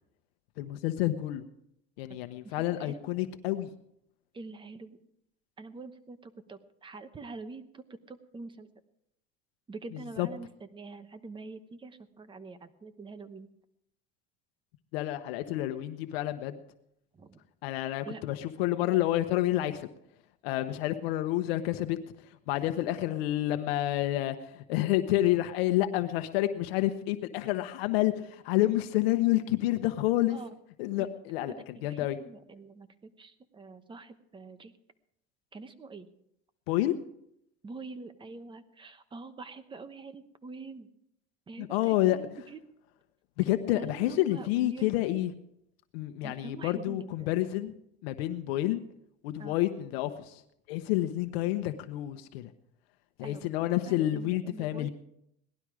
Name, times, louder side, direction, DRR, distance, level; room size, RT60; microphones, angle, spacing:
voice 1, 0.6-1.5 2.0-3.7 9.9-10.3 14.9-16.6 17.6-19.9 20.4-22.0 22.5-30.4 30.8-32.2 36.7-36.9 41.6-42.4 43.4-45.3 45.9-47.7 48.0-48.8 49.2-50.4 50.7-52.5 53.2-54.9, left 15 dB, 80° left, 8 dB, 1.0 m, -29 dB
voice 2, 4.3-5.0 5.6-7.6 8.1-8.7 9.7-13.5 17.2-17.4 17.8-18.2 30.3-30.5 31.0-31.1 31.5-34.7 35.5-36.1 37.6-40.9 41.5-42.3 43.7-44.8 46.2-47.3 49.4-49.5 53.2-53.5 53.9-54.9, right 3 dB, 15° right, 10 dB, 1.0 m, -45 dB
18.5 x 12.0 x 4.9 m, 0.78 s
supercardioid pair, 130°, 30 cm